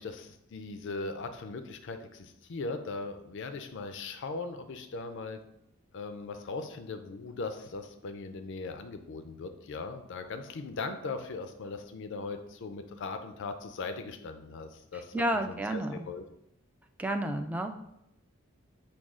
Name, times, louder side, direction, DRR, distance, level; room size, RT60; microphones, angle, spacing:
voice 1, 0.0-5.4 5.9-16.2, left 3 dB, 60° left, 8 dB, 0.4 m, -39 dB
voice 2, 14.9-15.9 17.0-17.7, right 1 dB, 5° right, 5 dB, 0.3 m, -31 dB
6.2 x 2.3 x 3.6 m, 0.80 s
head